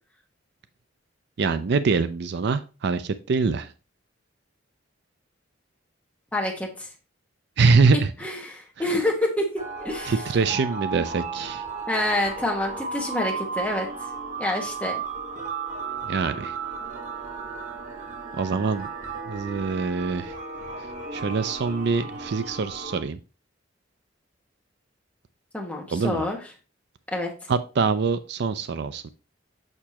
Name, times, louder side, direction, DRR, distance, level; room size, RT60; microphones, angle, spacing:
voice 1, 1.4-3.7 7.6-8.1 10.1-11.6 16.1-16.6 18.3-18.9 19.3-20.3 21.1-23.2 25.9-26.3 27.5-29.1, right 4 dB, 60° right, 12 dB, 0.4 m, -24 dB
voice 2, 6.3-6.9 8.2-10.1 11.9-13.9 14.4-15.0 25.5-26.4 27.1-27.3, left 1 dB, 10° left, 0 dB, 1.4 m, -27 dB
sound 1, 9.6-23.0, right 5 dB, 45° right, 1.2 m, -34 dB
6.6 x 6.0 x 2.9 m, 0.32 s
head